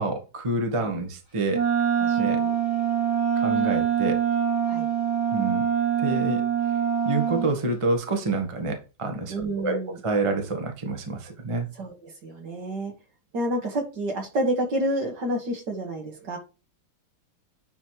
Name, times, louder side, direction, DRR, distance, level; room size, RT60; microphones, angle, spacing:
voice 1, 0.0-1.6 2.2-2.4 3.4-4.2 5.3-5.6 6.0-6.4 7.0-11.7, right 2 dB, 20° right, 4 dB, 1.1 m, -27 dB
Wind instrument woodwind instrument, 1.5-7.5, right 8 dB, 80° right, 4.8 m, -24 dB
voice 2, 2.0-2.5 4.7-4.9 9.3-10.0 11.8-12.9 13.3-16.4, right 1 dB, 60° right, 2 dB, 2.4 m, -29 dB
9.6 x 3.4 x 4.5 m, 0.31 s
omnidirectional pair, 2.2 m